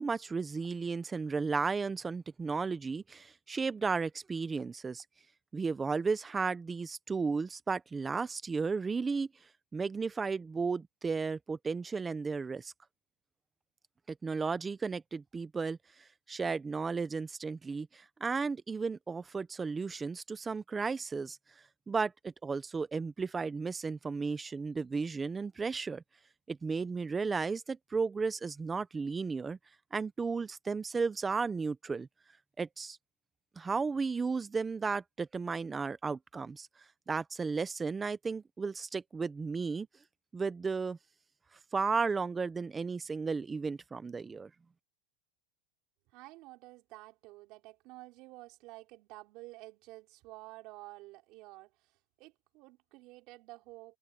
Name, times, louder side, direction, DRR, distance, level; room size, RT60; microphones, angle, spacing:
voice 1, 0.0-5.0 5.5-9.3 9.7-12.7 14.1-15.8 16.3-21.4 21.9-26.0 26.5-29.6 29.9-32.1 32.6-33.0 33.6-36.7 37.1-39.9 40.3-41.0 41.7-44.5, right 4 dB, 10° right, 0.7 m, -34 dB
voice 2, 46.1-54.0, right 20 dB, 40° right, 4.3 m, -51 dB
supercardioid pair, 170°, 0 cm